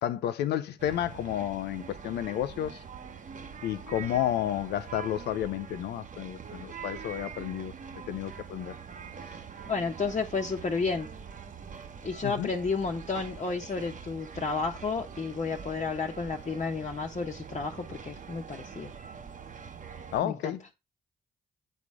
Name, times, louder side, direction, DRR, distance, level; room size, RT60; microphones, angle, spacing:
voice 1, 0.0-2.8 3.6-7.7 8.1-8.7 12.2-12.5 20.1-20.6, left 11 dB, 85° left, 0.7 m, -31 dB
sound 1, 0.8-20.2, right 6 dB, 50° right, 1.1 m, -44 dB
voice 2, 9.6-11.1 12.0-18.9 20.2-20.5, left 4 dB, 45° left, 1.3 m, -32 dB
8.3 x 4.3 x 4.8 m
supercardioid pair, 50°, 17 cm